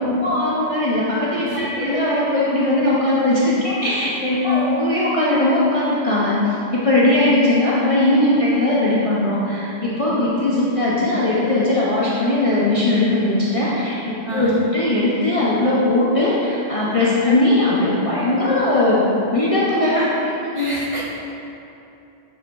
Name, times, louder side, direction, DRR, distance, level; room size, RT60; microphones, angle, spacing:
voice 1, 0.0-19.0 19.3-20.3, left 1 dB, 30° left, -8 dB, 0.8 m, -19 dB
voice 2, 1.5-2.0 4.4-4.8 14.2-14.6 17.2-17.4 20.5-21.0, left 2 dB, 35° right, -9 dB, 1.8 m, -24 dB
9.0 x 6.0 x 2.6 m, 2.8 s
omnidirectional pair, 1.3 m